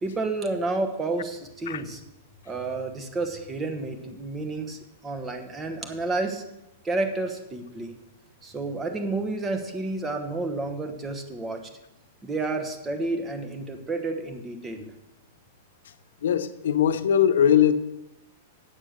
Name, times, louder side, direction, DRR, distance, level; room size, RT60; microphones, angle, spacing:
voice 1, 0.0-2.0 2.5-6.4 6.8-8.0 8.4-11.6 12.2-14.9, right 2 dB, 15° right, 1.1 m, -30 dB
voice 2, 16.2-17.7, left 9 dB, 80° left, 0.7 m, -20 dB
9.0 x 6.4 x 6.6 m
supercardioid pair, 150°, 0 cm